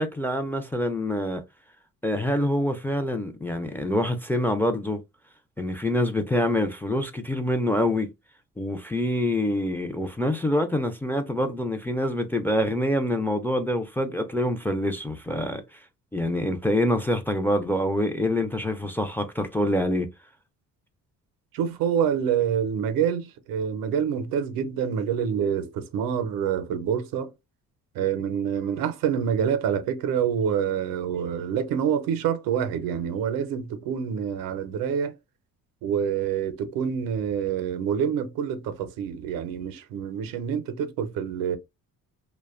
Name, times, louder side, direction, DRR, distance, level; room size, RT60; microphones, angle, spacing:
voice 1, 0.0-1.4 2.0-5.0 5.6-8.1 8.6-15.8 16.1-20.1, left 1 dB, 5° left, 0.3 m, -26 dB
voice 2, 21.5-27.3 27.9-35.1 35.8-41.6, right 8 dB, 85° right, 0.5 m, -27 dB
2.5 x 2.1 x 2.3 m
cardioid pair, 85°, 34 cm